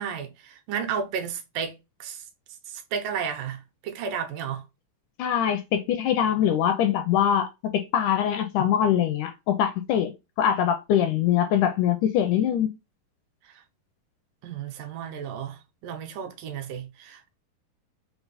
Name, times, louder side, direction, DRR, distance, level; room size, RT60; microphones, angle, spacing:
voice 1, 0.0-2.2 2.7-4.6 13.4-13.6 14.4-17.4, right 7 dB, 80° right, 2.3 m, -33 dB
voice 2, 5.2-12.7, left 9 dB, 80° left, 1.8 m, -23 dB
5.8 x 2.0 x 4.0 m
omnidirectional pair, 3.9 m